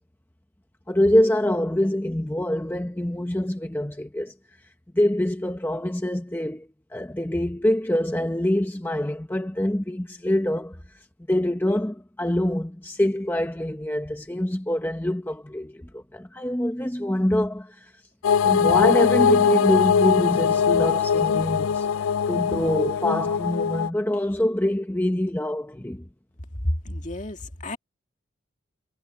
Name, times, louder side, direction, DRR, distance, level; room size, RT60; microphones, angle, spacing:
voice 1, 0.9-4.3 4.9-17.9 18.4-26.0, left 1 dB, 10° left, 0.8 m, -25 dB
sound 1, 18.2-23.9, left 7 dB, 90° left, 0.4 m, -21 dB
voice 2, 26.9-27.8, left 2 dB, 40° left, 2.1 m, -34 dB
head